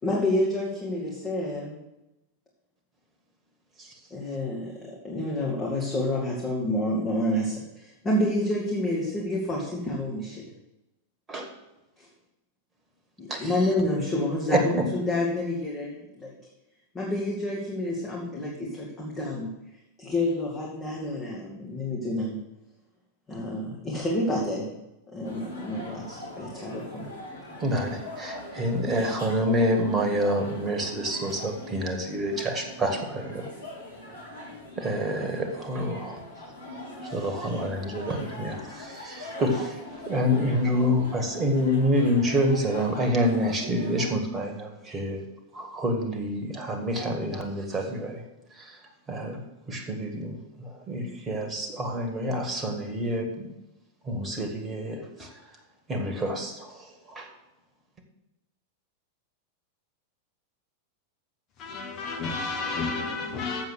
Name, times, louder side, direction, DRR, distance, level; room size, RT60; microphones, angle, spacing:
voice 1, 0.0-1.8 4.1-10.4 12.0-12.1 13.2-16.3 16.9-19.5 20.0-22.4 23.3-24.7 25.1-27.1, left 1 dB, 20° left, 1.9 m, -29 dB
voice 2, 14.5-14.8 27.6-33.4 34.8-36.2 37.0-39.8 40.1-45.2 45.5-48.2 48.6-48.8 49.1-49.4 49.7-53.5 54.1-55.3 55.9-57.3, equal, 20° right, 1.9 m, -27 dB
sound 1, 25.2-44.1, left 1 dB, 75° left, 2.3 m, -42 dB
voice 3, 61.6-63.7, left 4 dB, 35° left, 1.2 m, -31 dB
7.5 x 7.1 x 6.4 m
figure-of-eight pair, 90°, 0 cm